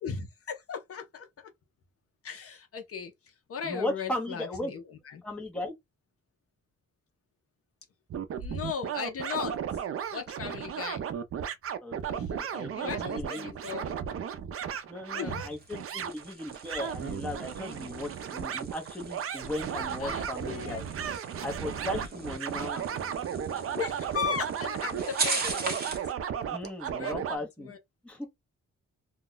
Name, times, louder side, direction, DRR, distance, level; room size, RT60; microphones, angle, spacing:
voice 1, 0.0-1.3 2.2-3.1 3.5-5.2 8.4-9.6 10.1-11.0 12.1-13.9 15.1-15.5 20.0-20.8 23.7-26.0 26.9-27.8, left 7 dB, 50° left, 0.6 m, -37 dB
voice 2, 3.6-4.7 5.2-5.7 10.4-10.6 11.8-13.6 14.9-20.8 21.4-22.9 26.5-27.7 28.0-28.3, left 1 dB, 5° left, 0.7 m, -37 dB
sound 1, 8.1-27.4, right 8 dB, 50° right, 0.4 m, -35 dB
sound 2, 15.4-26.1, right 3 dB, 30° right, 0.8 m, -39 dB
2.3 x 2.1 x 3.7 m
wide cardioid pair, 175°, 30 cm